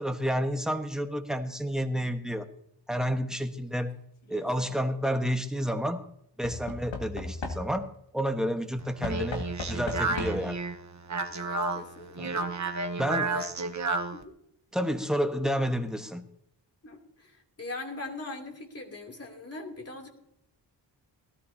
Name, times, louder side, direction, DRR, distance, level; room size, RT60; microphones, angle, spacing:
voice 1, 0.0-2.5 2.9-3.9 4.3-6.0 6.4-10.6 12.2-12.3 13.0-13.3 14.7-16.2, equal, ahead, 6 dB, 1.3 m, -30 dB
Knock / Wood, 4.2-4.7 6.4-8.0 9.0-10.6 11.7-11.8 12.0-12.1, left 2 dB, 80° left, 2.0 m, -37 dB
Speech, 8.8-14.2, right 3 dB, 40° right, 1.1 m, -32 dB
voice 2, 11.3-12.5 13.2-13.5 14.1-14.3 16.8-20.1, left 2 dB, 35° left, 1 dB, 3.0 m, -41 dB
18.5 x 13.0 x 2.8 m, 0.74 s
cardioid pair, 75°, 44 cm